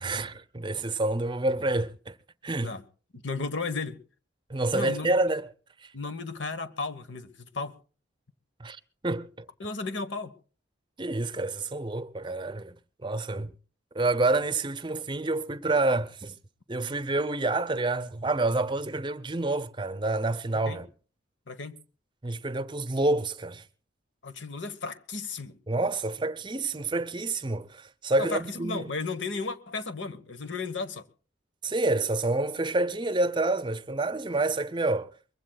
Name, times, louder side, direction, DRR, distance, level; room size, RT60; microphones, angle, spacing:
voice 1, 0.0-2.2 2.4-2.7 4.5-5.5 5.8-5.9 8.6-9.5 11.0-13.5 13.9-16.3 16.7-20.9 22.2-23.6 25.7-28.9 31.6-35.1, right 2 dB, 25° right, 0.7 m, -28 dB
voice 2, 3.1-4.0 4.7-5.2 5.9-7.7 9.6-10.3 20.7-20.8 21.5-21.8 24.2-25.6 28.2-31.1, left 3 dB, 75° left, 1.2 m, -34 dB
23.5 x 22.0 x 2.3 m
head